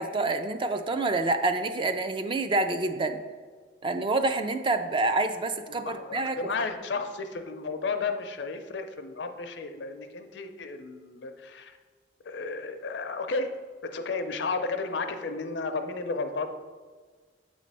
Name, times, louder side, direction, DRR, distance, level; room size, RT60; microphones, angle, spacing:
voice 1, 0.0-3.2 3.8-6.4, right 2 dB, 30° right, 8 dB, 0.4 m, -27 dB
voice 2, 5.8-11.8 12.2-13.6 13.9-16.5, left 4 dB, 70° left, 7 dB, 0.5 m, -33 dB
7.4 x 3.1 x 5.4 m, 1.5 s
head